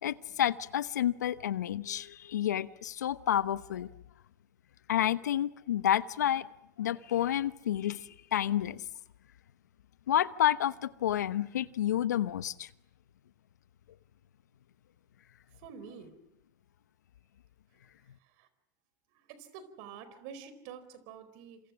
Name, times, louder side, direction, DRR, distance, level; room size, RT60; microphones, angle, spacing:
voice 1, 0.0-3.9 4.9-6.5 6.8-8.8 10.1-12.7, left 11 dB, 85° left, 1.0 m, -30 dB
voice 2, 15.6-16.1 18.4-18.5 19.3-21.6, right 7 dB, 60° right, 4.4 m, -47 dB
30.0 x 27.0 x 6.2 m
hypercardioid pair, 100°, 9 cm